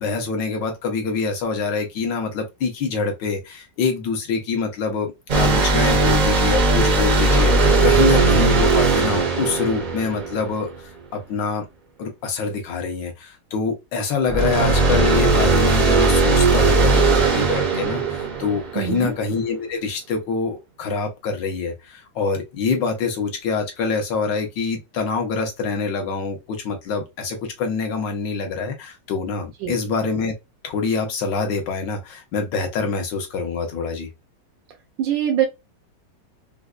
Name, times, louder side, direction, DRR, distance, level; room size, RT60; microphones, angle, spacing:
voice 1, 0.0-11.7 12.0-30.3 30.6-34.1, left 4 dB, 80° left, 1.6 m, -25 dB
sound 1, 5.3-10.8 14.3-19.0, right 3 dB, 65° right, 0.4 m, -18 dB
voice 2, 18.7-19.1 29.6-29.7 35.0-35.5, right 11 dB, 85° right, 1.3 m, -23 dB
4.5 x 2.2 x 2.3 m
omnidirectional pair, 1.9 m